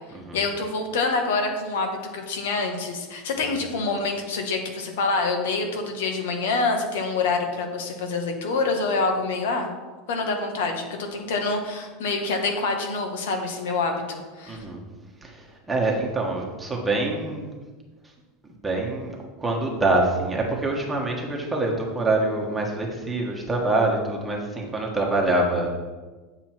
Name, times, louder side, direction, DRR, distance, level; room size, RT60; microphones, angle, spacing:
voice 1, 0.3-9.7 10.1-14.6, left 3 dB, 85° left, 4 dB, 1.7 m, -26 dB
voice 2, 14.5-14.8 15.2-17.5 18.6-25.7, right 2 dB, 10° right, -1 dB, 1.3 m, -25 dB
9.6 x 6.8 x 4.5 m, 1.3 s
supercardioid pair, 155°, 0 cm